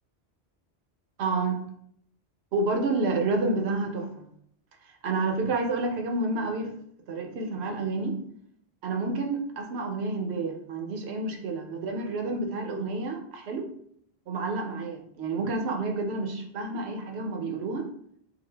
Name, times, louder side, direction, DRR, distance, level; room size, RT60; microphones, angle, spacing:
voice 1, 1.2-1.6 2.5-4.3 4.8-6.8 7.1-8.2 8.8-13.7 14.3-17.9, right 3 dB, 75° right, 3 dB, 1.0 m, -29 dB
3.8 x 2.5 x 3.3 m, 0.66 s
omnidirectional pair, 1.1 m